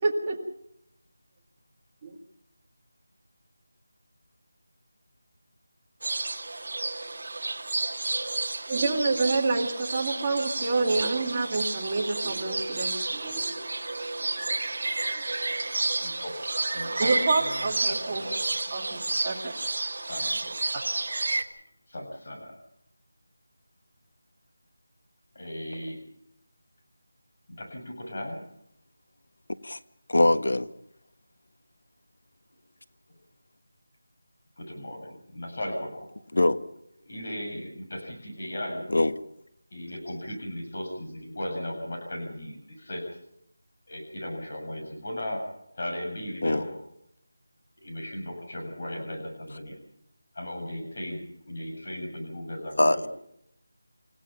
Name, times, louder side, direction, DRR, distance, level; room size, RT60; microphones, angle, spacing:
voice 1, 0.0-0.4 2.0-2.2 8.7-13.6 14.2-14.6 15.4-15.5 17.0-18.2 18.7-19.5, right 3 dB, 15° right, 2.0 m, -28 dB
sound 1, 6.0-21.4, right 2 dB, 45° right, 1.8 m, -31 dB
voice 2, 15.9-16.4 16.7-18.4 20.0-20.5 21.9-22.6 25.4-26.0 27.5-28.4 34.6-36.1 37.1-38.9 39.7-43.0 43.9-45.4 45.7-46.8 47.8-49.8 50.3-53.1, left 1 dB, 35° left, 7.2 m, -36 dB
voice 3, 30.1-30.7 36.3-36.6 38.9-39.1 46.4-46.6 52.8-53.1, left 2 dB, 70° left, 1.3 m, -22 dB
28.5 x 16.0 x 5.7 m
figure-of-eight pair, 180°, 0 cm